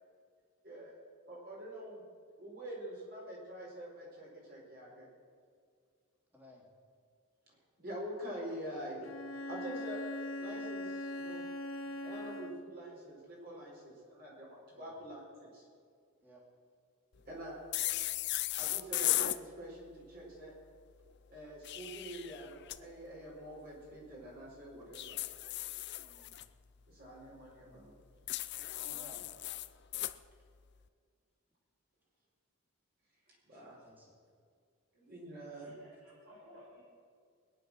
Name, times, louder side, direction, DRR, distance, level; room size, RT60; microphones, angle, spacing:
voice 1, 1.3-2.0 2.4-5.1 7.8-9.1 9.5-10.0 10.4-11.4 12.0-15.6 17.3-17.6 18.5-20.5 21.3-25.2 26.9-27.9 33.5-33.8 34.9-35.7, right 1 dB, 45° right, -4 dB, 5.0 m, -46 dB
voice 2, 6.3-6.6 14.8-15.0 16.2-16.4 26.0-26.4 28.9-29.2 33.6-34.2, equal, 10° right, -3 dB, 3.0 m, -58 dB
Bowed string instrument, 9.0-12.8, left 1 dB, 70° left, 0.9 m, -41 dB
sound 1, 17.7-19.4 21.4-22.8 24.9-26.4 28.3-30.2, left 15 dB, 55° left, 0.5 m, -36 dB
voice 3, 35.5-36.8, equal, 75° right, -7 dB, 5.4 m, -57 dB
21.0 x 10.0 x 6.3 m, 2.2 s
head